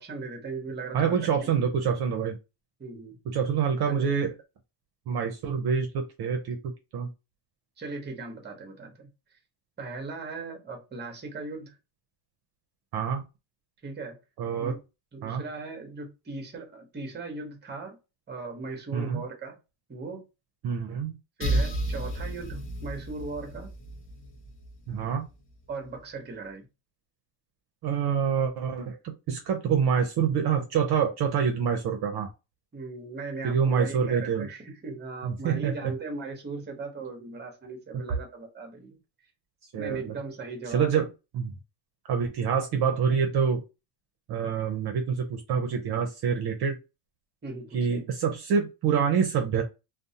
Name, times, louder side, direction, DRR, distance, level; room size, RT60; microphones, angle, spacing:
voice 1, 0.0-1.1 1.4-1.5 2.8-3.4 3.9-4.1 7.8-9.1 9.8-11.7 13.8-14.2 14.5-14.8 15.1-18.0 18.3-19.6 19.9-20.2 21.4-23.7 25.7-26.7 32.7-39.0 39.8-41.1 47.4-48.0, right 3 dB, 20° right, 0.8 m, -38 dB
voice 2, 0.9-2.4 3.3-4.3 5.1-6.6 6.9-7.1 12.9-13.2 14.4-14.7 15.2-15.4 18.9-19.2 20.6-21.1 24.9-25.3 27.8-29.0 29.3-32.3 33.4-34.5 35.2-35.7 39.7-40.1 40.7-41.0 41.3-41.5 42.1-43.6 44.3-46.7 47.7-49.6, right 7 dB, 55° right, 0.6 m, -26 dB
sound 1, 21.4-25.1, right 1 dB, 25° left, 0.6 m, -32 dB
2.5 x 2.0 x 2.7 m
cardioid pair, 120°, 48 cm